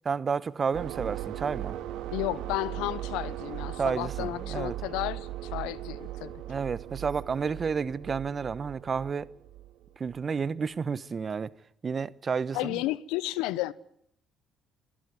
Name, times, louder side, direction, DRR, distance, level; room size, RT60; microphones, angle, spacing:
voice 1, 0.0-1.8 3.8-4.7 6.5-9.3 10.0-11.5 11.8-12.8, right 5 dB, 40° right, 1.0 m, -31 dB
sound 1, 0.7-10.2, right 13 dB, 70° right, 2.5 m, -38 dB
voice 2, 2.1-6.4 12.5-13.7, left 17 dB, 80° left, 0.8 m, -32 dB
27.0 x 15.0 x 9.5 m
hypercardioid pair, 55°, 0 cm